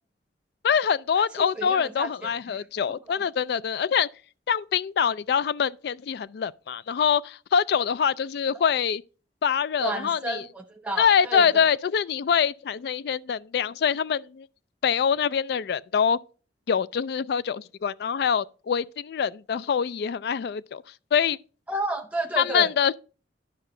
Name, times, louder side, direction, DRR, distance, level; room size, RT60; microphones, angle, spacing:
voice 1, 0.6-4.1 4.5-9.0 9.4-10.4 11.0-14.5 14.8-16.2 16.7-20.8 21.1-21.4 22.4-22.9, left 7 dB, 60° left, 0.3 m, -24 dB
voice 2, 1.2-2.6 3.1-3.2 8.5-8.6 9.8-11.7 21.7-22.7, right 2 dB, 5° right, 0.8 m, -32 dB
11.0 x 5.5 x 3.7 m
head